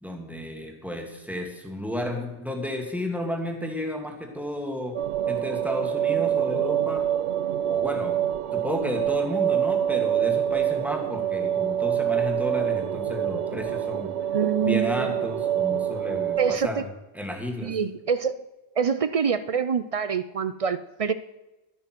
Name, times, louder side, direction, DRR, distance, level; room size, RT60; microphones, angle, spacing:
voice 1, 0.0-5.0 5.3-7.1 7.6-8.2 8.5-14.1 14.6-16.9 17.1-17.8, left 1 dB, ahead, 2 dB, 1.8 m, -32 dB
sound 1, 4.9-16.6, right 10 dB, 85° right, 0.9 m, -26 dB
voice 2, 14.3-15.1 16.4-16.8 17.6-18.4 18.8-21.1, right 6 dB, 55° right, 14 dB, 0.4 m, -25 dB
12.0 x 8.7 x 6.1 m, 1.0 s
omnidirectional pair, 1.1 m